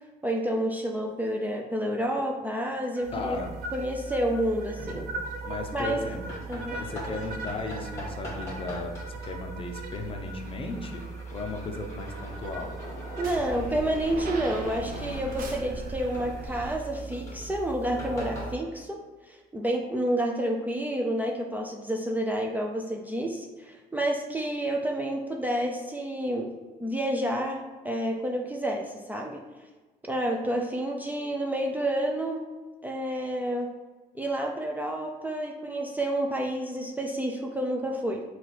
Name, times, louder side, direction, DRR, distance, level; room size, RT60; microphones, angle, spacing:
voice 1, 0.2-3.5 3.7-5.1 5.7-6.1 6.5-6.8 13.2-19.0 19.3-26.5 26.8-27.6 27.8-29.4 30.0-32.4 32.8-33.7 34.1-38.2, right 1 dB, 10° right, 0 dB, 0.4 m, -29 dB
sound 1, 2.9-16.8, right 1 dB, 55° right, 0.7 m, -41 dB
sound 2, 3.0-18.6, right 2 dB, 15° left, 1.4 m, -39 dB
voice 2, 3.1-3.5 5.4-6.2 6.7-11.0 11.3-12.8, left 3 dB, 30° left, 2 dB, 0.6 m, -36 dB
4.2 x 2.4 x 4.2 m, 1.3 s
cardioid pair, 110°, 17 cm